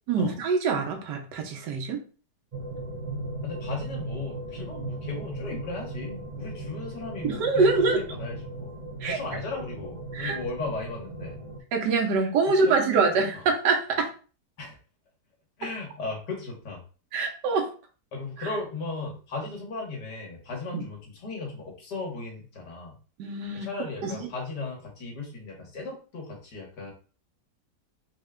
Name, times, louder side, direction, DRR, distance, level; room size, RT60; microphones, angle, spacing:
voice 1, 0.1-2.0 7.2-8.0 9.0-9.2 10.1-10.4 11.7-14.1 17.1-17.7 18.4-18.5 20.7-20.8 23.2-23.7 24.0-24.2, right 4 dB, 90° right, 3 dB, 1.5 m, -24 dB
sound 1, 2.5-11.6, right 2 dB, 40° right, 0.5 m, -37 dB
voice 2, 3.4-8.7 9.1-11.4 12.5-13.4 14.6-14.8 15.6-16.8 18.1-23.0 23.5-26.9, left 3 dB, 80° left, 0 dB, 1.8 m, -36 dB
4.1 x 2.2 x 3.6 m, 0.37 s
omnidirectional pair, 1.8 m